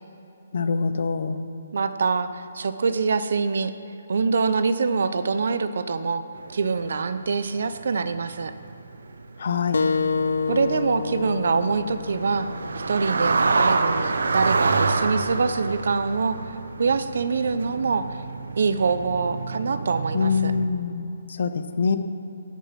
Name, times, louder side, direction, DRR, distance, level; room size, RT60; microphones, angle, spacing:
voice 1, 0.5-1.4 9.4-9.8 20.1-21.1 21.4-22.0, left 5 dB, 50° left, 10 dB, 0.9 m, -24 dB
voice 2, 1.7-3.7 4.1-6.2 6.5-8.5 10.5-12.5 12.9-16.4 16.8-18.2 18.6-20.5, right 4 dB, 60° right, 12 dB, 0.7 m, -24 dB
sound 1, 6.4-7.4 7.6-20.7, right 4 dB, 85° right, 0.9 m, -27 dB
sound 2, 9.7-14.9, left 5 dB, 75° left, 0.6 m, -29 dB
17.5 x 7.2 x 5.9 m, 2.9 s
hypercardioid pair, 175°, 0 cm